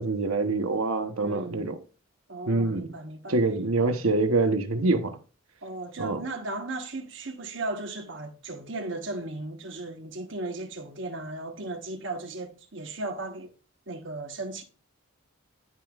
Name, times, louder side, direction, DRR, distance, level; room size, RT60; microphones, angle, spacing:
voice 1, 0.0-1.8 2.5-2.9 3.3-5.2 6.0-6.2, right 3 dB, 85° right, 1.0 m, -25 dB
voice 2, 1.2-1.7 2.3-3.4 5.6-13.5 13.9-14.6, right 2 dB, 60° right, 1.2 m, -36 dB
12.5 x 5.3 x 2.4 m
head